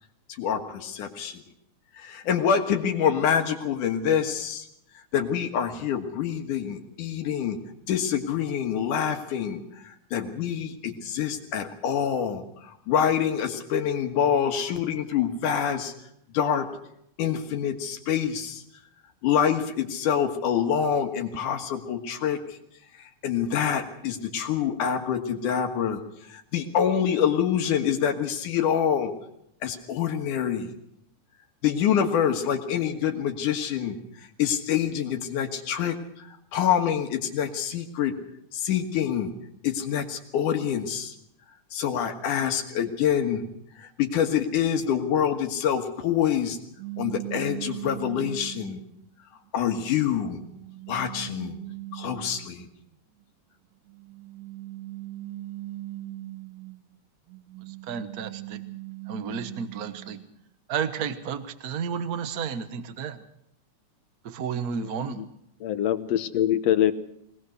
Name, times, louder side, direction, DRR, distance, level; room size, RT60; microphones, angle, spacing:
voice 1, 0.4-1.4 1.9-4.7 5.1-7.6 7.9-15.9 16.3-16.7 17.2-18.6 19.2-22.6 22.9-26.0 26.3-29.1 29.6-30.7 31.6-38.2 38.5-39.3 39.6-41.1 41.7-43.5 43.8-46.6 47.0-48.8 49.5-50.4 50.9-51.6 51.9-52.7, left 8 dB, 85° left, 4 dB, 3.1 m, -26 dB
sound 1, 46.8-49.0 49.6-52.7 53.9-56.8 57.3-60.3, right 17 dB, 85° right, 2.7 m, -40 dB
voice 2, 57.7-58.6 59.1-60.2 60.7-63.2 64.2-65.2, right 7 dB, 65° right, 11 dB, 0.9 m, -32 dB
voice 3, 64.8-65.3 65.6-66.9, left 11 dB, 65° left, 12 dB, 1.9 m, -24 dB
21.5 x 19.0 x 6.5 m, 0.76 s
omnidirectional pair, 3.6 m